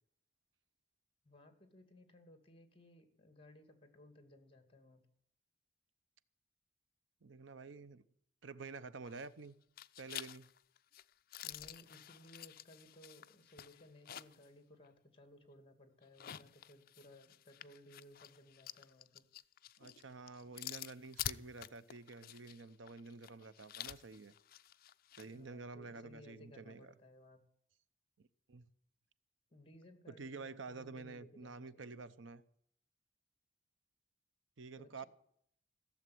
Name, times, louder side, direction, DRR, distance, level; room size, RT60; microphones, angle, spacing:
voice 1, 1.2-5.0 11.4-19.2 25.3-27.4 29.5-32.0 34.7-35.1, left 1 dB, 30° left, 2.3 m, -60 dB
voice 2, 7.2-8.0 8.4-9.6 10.0-10.5 19.8-24.3 25.2-26.9 28.2-28.7 30.1-32.4 34.6-35.0, right 4 dB, 85° right, 0.7 m, -49 dB
sound 1, 9.0-9.5 9.8-14.5 14.8-14.9 16.0-25.3, left 11 dB, 50° left, 0.5 m, -49 dB
16.0 x 7.3 x 9.3 m
head